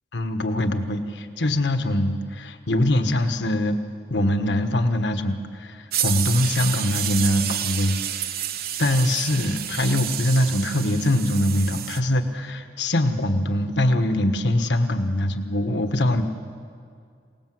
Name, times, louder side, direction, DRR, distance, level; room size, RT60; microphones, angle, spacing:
voice 1, 0.1-3.8 4.1-8.5 8.8-16.2, left 1 dB, 85° left, 7 dB, 1.4 m, -23 dB
sound 1, 5.9-12.0, right 10 dB, 60° right, 0.9 m, -29 dB
27.0 x 18.5 x 7.8 m, 2.2 s
head